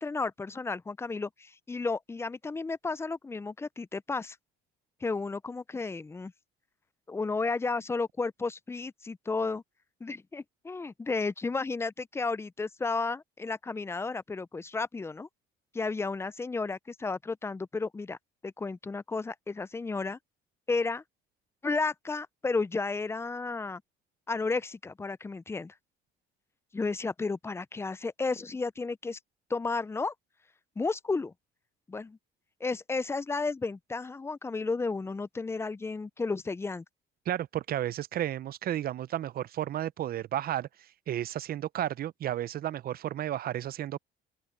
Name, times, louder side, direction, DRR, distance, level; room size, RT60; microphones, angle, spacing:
voice 1, 0.0-4.4 5.0-6.3 7.1-9.6 10.0-15.3 15.7-18.2 18.4-20.2 20.7-21.0 21.6-23.8 24.3-25.7 26.7-29.2 29.5-30.1 30.8-31.3 31.9-32.2 32.6-36.8, left 3 dB, 10° left, 0.4 m, -33 dB
voice 2, 37.3-40.7 41.1-44.0, right 12 dB, 45° right, 0.6 m, -32 dB
open air
cardioid pair, 105°, 21 cm